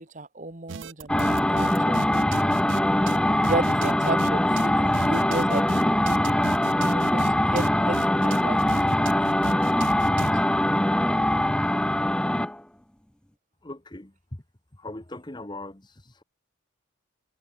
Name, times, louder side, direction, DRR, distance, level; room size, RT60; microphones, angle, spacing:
voice 1, 0.0-2.0 3.4-6.0 6.8-9.1 10.3-10.4, right 2 dB, 35° right, 1.6 m, -33 dB
sound 1, 0.7-2.8 3.1-3.2 3.4-4.3 4.6-4.7 4.9-7.3 7.5-10.3, right 6 dB, 60° right, 0.5 m, -36 dB
sound 2, 1.1-12.6, left 1 dB, 5° left, 0.3 m, -22 dB
voice 2, 13.6-14.4 14.7-16.2, left 2 dB, 20° left, 1.3 m, -40 dB
head